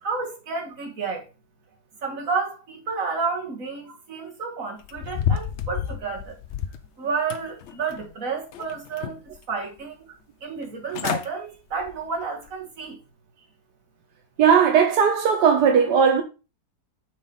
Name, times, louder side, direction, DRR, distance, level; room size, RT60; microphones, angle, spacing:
voice 1, 0.0-1.3 2.0-6.4 7.0-9.2 9.5-10.0 10.4-13.0, right 5 dB, 55° right, 2.1 m, -30 dB
sound 1, 4.8-6.9 7.3-8.1 8.5-9.4 9.8-9.9 10.6-10.7 10.9-11.3 11.7-12.0 12.5-12.6, left 9 dB, 70° left, 0.6 m, -30 dB
voice 2, 14.4-16.2, right 7 dB, 85° right, 1.5 m, -17 dB
6.3 x 3.9 x 5.3 m
omnidirectional pair, 1.8 m